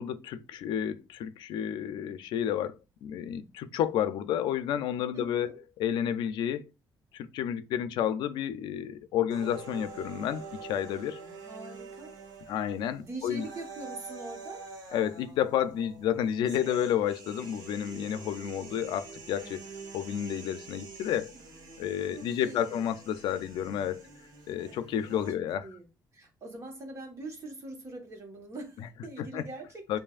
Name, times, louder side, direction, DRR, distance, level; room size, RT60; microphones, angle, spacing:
voice 1, 0.0-5.5 5.8-6.7 7.1-11.2 12.5-13.4 14.9-19.6 19.9-21.3 21.8-24.0 24.5-25.7 29.2-29.4 29.9-30.0, left 10 dB, 85° left, 0.4 m, -31 dB
voice 2, 5.1-5.6 11.5-12.1 13.0-14.6 22.1-22.8 25.6-25.9 26.1-30.0, right 2 dB, 40° right, 1.4 m, -43 dB
sound 1, 9.3-25.3, right 4 dB, 60° right, 1.3 m, -46 dB
7.2 x 2.6 x 2.5 m
cardioid pair, 140°, 8 cm